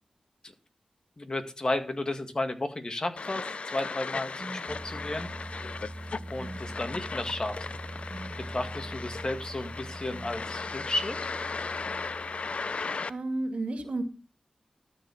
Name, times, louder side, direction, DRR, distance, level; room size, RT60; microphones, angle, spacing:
voice 1, 1.2-5.3 6.3-8.0 8.5-11.3, left 2 dB, 40° left, 7 dB, 1.9 m, -33 dB
sound 1, 3.2-13.1, left 4 dB, 65° left, 0.5 m, -37 dB
sound 2, 4.2-13.0, right 1 dB, 20° right, 0.7 m, -42 dB
voice 2, 12.8-14.0, right 2 dB, 75° right, 6 dB, 2.2 m, -32 dB
13.5 x 4.8 x 8.5 m, 0.35 s
wide cardioid pair, 60°, 2 cm